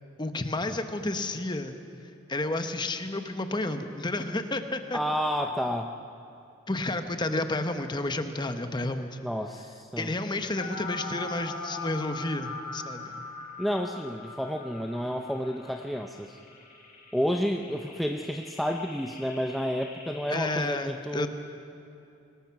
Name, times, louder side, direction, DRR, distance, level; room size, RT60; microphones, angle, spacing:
voice 1, 0.2-1.8 2.3-5.0 6.7-9.2 10.0-13.2 20.3-21.3, left 2 dB, 20° left, 7 dB, 1.0 m, -31 dB
voice 2, 4.9-5.9 7.3-7.4 9.2-10.1 13.6-16.4 17.1-21.3, equal, ahead, 2 dB, 0.6 m, -30 dB
sound 1, 10.6-20.5, left 3 dB, 40° left, 5.3 m, -41 dB
24.0 x 19.5 x 5.9 m, 2.8 s
head